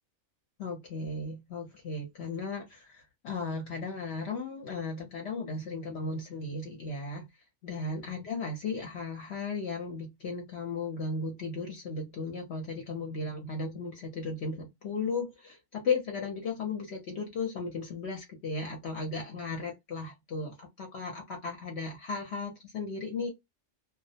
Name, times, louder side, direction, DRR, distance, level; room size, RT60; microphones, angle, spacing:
voice 1, 0.6-7.3 7.6-23.3, left 4 dB, 60° left, 0.8 m, -35 dB
2.3 x 2.0 x 2.7 m
omnidirectional pair, 1.4 m